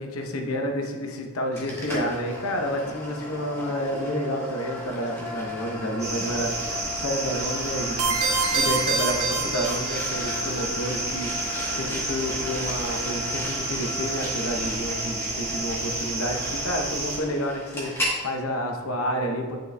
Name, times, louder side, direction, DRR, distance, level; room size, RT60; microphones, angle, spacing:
voice 1, 0.0-8.2 8.5-19.6, equal, 70° left, 3 dB, 0.8 m, -30 dB
sound 1, 1.6-18.2, equal, 10° left, 1.0 m, -35 dB
sound 2, 6.0-17.2, right 2 dB, 30° right, 1.1 m, -31 dB
sound 3, 8.0-10.3, right 4 dB, 85° right, 1.0 m, -26 dB
9.0 x 5.1 x 2.2 m, 1.5 s
head